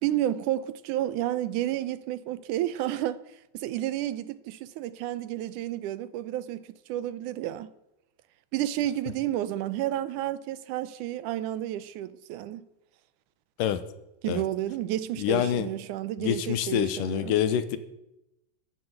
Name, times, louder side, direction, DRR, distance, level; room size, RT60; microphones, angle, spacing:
voice 1, 0.0-3.2 3.5-7.7 8.5-12.7 14.2-17.3, right 13 dB, 80° right, 2.2 m, -31 dB
voice 2, 15.2-15.7 16.2-17.8, left 10 dB, 90° left, 2.7 m, -26 dB
14.5 x 11.5 x 8.0 m
omnidirectional pair, 3.7 m